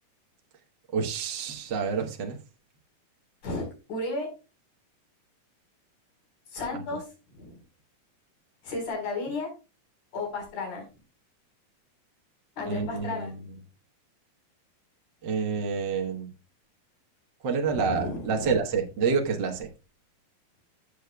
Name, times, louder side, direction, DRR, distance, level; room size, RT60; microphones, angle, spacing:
voice 1, 0.9-2.4 12.6-13.4 15.2-16.3 17.4-19.7, right 5 dB, 60° right, 1.2 m, -28 dB
voice 2, 3.4-4.3 6.5-7.0 7.3-7.6 8.6-9.5 10.1-10.8 12.6-13.3 17.7-18.6, left 3 dB, 65° left, 5.8 m, -33 dB
16.0 x 6.8 x 2.3 m
omnidirectional pair, 3.8 m